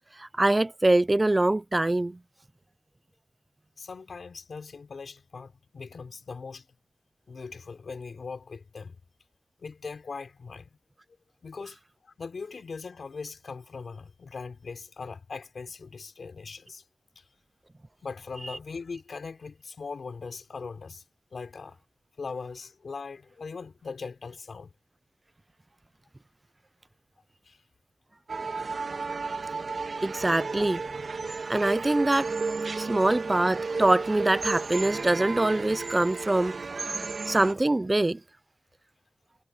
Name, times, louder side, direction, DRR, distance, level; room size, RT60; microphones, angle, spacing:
voice 1, 0.2-2.2 30.0-30.8 31.5-32.3 32.8-36.6 37.3-38.2, right 2 dB, 25° right, 0.6 m, -24 dB
voice 2, 3.8-6.7 7.3-9.0 9.6-10.8 11.4-16.8 17.2-17.3 18.0-21.0 21.3-21.8 22.2-24.7 27.4-27.6 30.6-30.7, left 4 dB, 70° left, 3.6 m, -40 dB
sound 1, 28.3-37.5, right 4 dB, 55° right, 2.1 m, -33 dB
wide cardioid pair, 75°, 0 cm